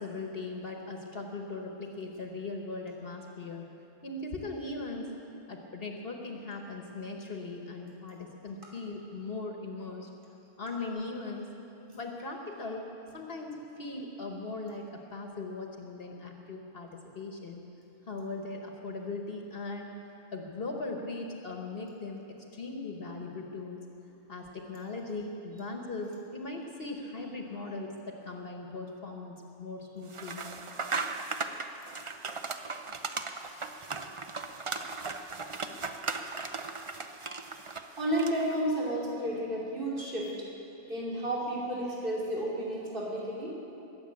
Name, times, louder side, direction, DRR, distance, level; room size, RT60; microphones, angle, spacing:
voice 1, 0.0-3.7 4.0-5.1 5.5-10.1 10.6-11.5 11.9-12.9 13.1-17.7 18.1-20.0 20.3-23.8 24.3-30.5, left 3 dB, 60° left, 2 dB, 1.4 m, -39 dB
sound 1, 30.1-38.6, right 4 dB, 35° right, 0.6 m, -37 dB
voice 2, 37.7-40.3 40.8-43.6, right 1 dB, 50° right, -5 dB, 3.1 m, -32 dB
22.0 x 7.3 x 8.6 m, 2.9 s
omnidirectional pair, 1.2 m